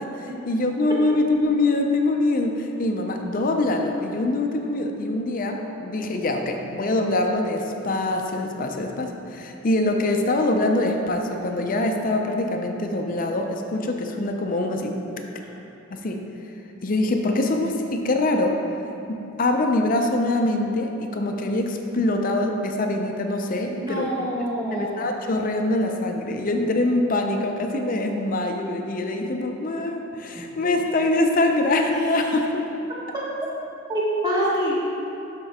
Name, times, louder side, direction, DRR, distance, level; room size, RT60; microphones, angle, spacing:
voice 1, 0.0-15.0 15.9-16.2 16.8-18.6 19.1-24.1 24.7-32.6, left 2 dB, 45° left, 3 dB, 0.5 m, -24 dB
voice 2, 23.7-25.0 33.9-34.7, right 1 dB, 20° right, -7 dB, 1.5 m, -25 dB
11.5 x 4.4 x 3.6 m, 2.9 s
head